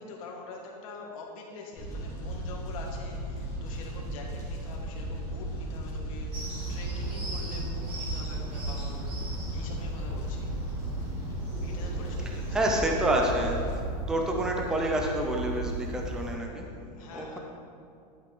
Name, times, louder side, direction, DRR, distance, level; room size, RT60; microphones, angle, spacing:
voice 1, 0.0-10.6 11.6-13.0 16.8-17.4, left 3 dB, 55° left, -1 dB, 1.6 m, -45 dB
Fire, 1.8-13.7, right 1 dB, 15° left, 2.0 m, -36 dB
sound 1, 6.3-16.4, right 2 dB, 25° right, 1.5 m, -36 dB
voice 2, 12.5-13.6 14.1-17.4, right 1 dB, 5° right, 1 dB, 0.4 m, -28 dB
11.5 x 5.5 x 3.8 m, 2.4 s
supercardioid pair, 170°, 21 cm